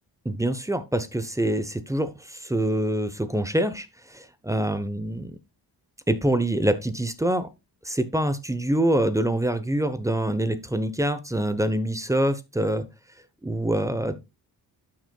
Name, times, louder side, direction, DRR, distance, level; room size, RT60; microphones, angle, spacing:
voice 1, 0.2-5.3 6.1-7.5 7.8-12.9 13.4-14.1, right 1 dB, 10° right, 0.9 m, -25 dB
12.0 x 6.4 x 2.3 m
cardioid pair, 110°, 40 cm